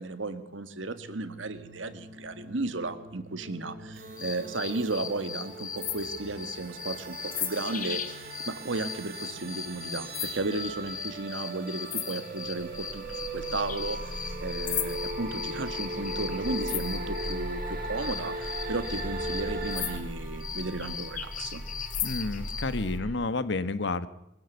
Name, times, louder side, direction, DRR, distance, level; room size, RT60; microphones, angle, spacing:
voice 1, 0.0-21.6, right 2 dB, 80° right, 11 dB, 1.7 m, -34 dB
sound 1, 0.8-20.0, right 2 dB, 55° right, 3.8 m, -39 dB
sound 2, 4.2-17.4 18.0-22.7, left 9 dB, 45° left, 1.7 m, -37 dB
sound 3, 12.6-23.1, equal, 5° right, 4.2 m, -40 dB
voice 2, 22.0-24.1, left 3 dB, 65° left, 14 dB, 1.2 m, -30 dB
22.5 x 16.0 x 8.1 m, 0.84 s
head